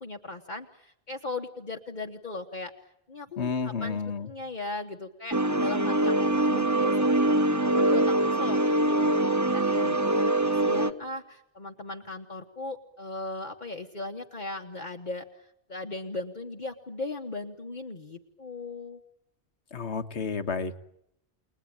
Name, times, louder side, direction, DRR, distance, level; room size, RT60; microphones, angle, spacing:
voice 1, 0.0-9.2 9.5-19.0, left 3 dB, 45° left, 2 dB, 1.5 m, -38 dB
voice 2, 3.4-4.3 19.7-20.8, left 5 dB, 80° left, 9 dB, 1.7 m, -31 dB
sound 1, 5.3-10.9, right 1 dB, 15° right, 1.0 m, -24 dB
30.0 x 21.0 x 8.9 m, 0.81 s
omnidirectional pair, 1.1 m